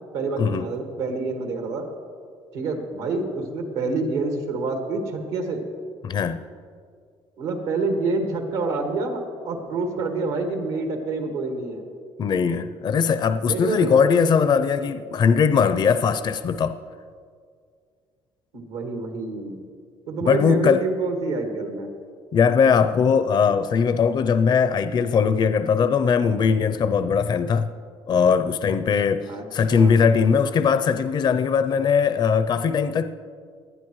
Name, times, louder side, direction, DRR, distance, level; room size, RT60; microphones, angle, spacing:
voice 1, 0.1-1.9 2.5-5.6 7.4-11.8 13.4-14.0 18.5-19.6 20.1-21.9 29.3-29.4 29.7-30.0, right 3 dB, 85° right, 1.8 m, -27 dB
voice 2, 6.0-6.4 12.2-16.8 20.2-20.8 22.3-27.7 28.1-33.1, left 6 dB, 45° left, 0.5 m, -20 dB
19.0 x 11.0 x 3.1 m
supercardioid pair, 90°, 11 cm